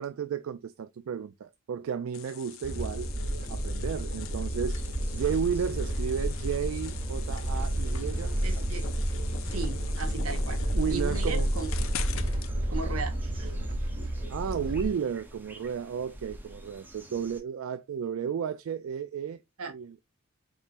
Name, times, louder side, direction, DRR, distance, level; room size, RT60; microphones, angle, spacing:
voice 1, 0.0-3.1 3.5-4.8 5.1-8.7 10.7-11.5 14.3-19.4 19.7-20.0, right 7 dB, 65° right, 0.3 m, -33 dB
sound 1, 2.1-12.5, left 9 dB, 65° left, 0.4 m, -43 dB
sound 2, 2.6-14.9, right 1 dB, 45° right, 1.4 m, -31 dB
sound 3, 4.7-17.4, equal, 10° right, 0.6 m, -40 dB
voice 2, 8.4-8.8 9.4-10.6 10.9-11.7 12.7-13.7 19.6-19.7, right 4 dB, 80° right, 1.0 m, -36 dB
4.1 x 3.7 x 2.5 m
head